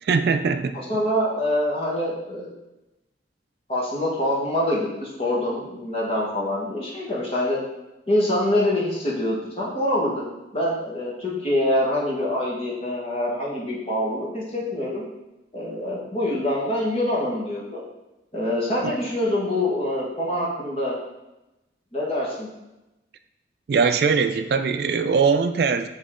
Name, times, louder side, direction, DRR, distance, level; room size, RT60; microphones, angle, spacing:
voice 1, 0.0-0.8 18.8-18.9 23.7-25.9, right 5 dB, 60° right, 9 dB, 0.3 m, -21 dB
voice 2, 0.7-2.5 3.7-7.6 8.1-10.2 10.5-15.0 15.5-17.8 18.3-20.9 21.9-22.5, left 1 dB, 35° left, -5 dB, 1.5 m, -25 dB
7.2 x 3.7 x 3.8 m, 0.98 s
head